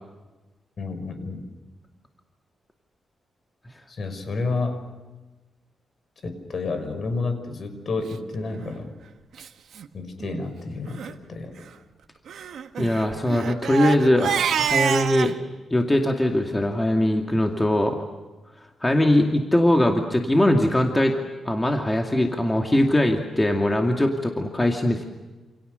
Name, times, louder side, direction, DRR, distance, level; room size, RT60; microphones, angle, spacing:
voice 1, 0.8-1.4 3.9-4.8 6.2-8.9 9.9-11.6, left 3 dB, 50° left, 8 dB, 5.6 m, -30 dB
Crying sobbing, 8.5-8.7 9.4-9.5 9.7-9.9 10.2-10.4 10.9-11.1 12.3-15.3, right 8 dB, 80° right, 1.6 m, -27 dB
voice 2, 12.8-15.3 15.7-18.0 18.8-21.1 21.4-25.1, left 1 dB, 15° left, 3 dB, 2.4 m, -21 dB
28.5 x 28.5 x 6.8 m, 1.2 s
cardioid pair, 120°, 0 cm